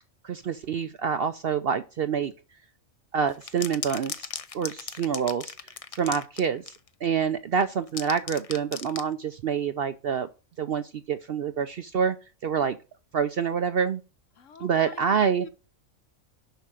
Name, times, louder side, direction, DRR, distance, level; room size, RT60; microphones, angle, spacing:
voice 1, 0.2-2.3 3.1-4.3 4.5-5.5 5.9-6.7 7.0-10.3 10.6-12.2 12.4-12.8 13.1-14.0 14.6-15.5, right 7 dB, 60° right, 0.6 m, -27 dB
sound 1, 3.3-6.9 7.6-9.1, left 6 dB, 40° left, 0.5 m, -37 dB
voice 2, 14.4-15.5, left 6 dB, 65° left, 1.2 m, -45 dB
6.9 x 6.0 x 7.6 m
omnidirectional pair, 1.4 m